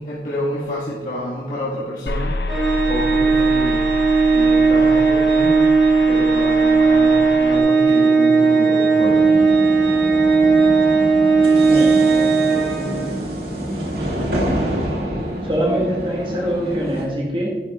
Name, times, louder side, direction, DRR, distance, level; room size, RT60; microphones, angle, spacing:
voice 1, 0.0-2.6 2.9-3.9 4.3-5.8 6.1-9.3, equal, 50° left, -9 dB, 1.8 m, -28 dB
sound 1, 2.1-7.6, left 2 dB, 65° left, 0.7 m, -28 dB
Organ, 2.5-13.3, right 4 dB, 5° right, 2.7 m, -16 dB
sound 2, 9.0-17.0, equal, 55° right, 2.2 m, -27 dB
voice 2, 11.6-13.1 15.4-17.6, equal, 30° right, -4 dB, 1.6 m, -24 dB
11.5 x 11.0 x 2.4 m, 1.4 s
head